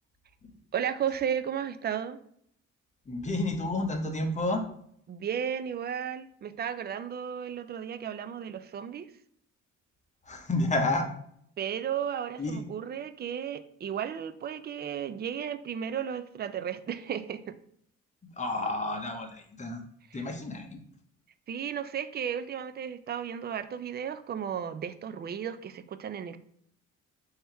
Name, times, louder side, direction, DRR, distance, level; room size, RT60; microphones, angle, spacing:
voice 1, 0.7-2.2 5.1-9.1 11.6-17.6 20.1-20.2 21.5-26.4, right 8 dB, 35° right, 12 dB, 0.4 m, -34 dB
voice 2, 3.1-4.6 10.3-11.1 12.4-12.6 18.4-19.8 20.1-20.8, left 2 dB, 25° left, 4 dB, 0.8 m, -30 dB
3.4 x 2.8 x 4.5 m, 0.67 s
cardioid pair, 90°, 30 cm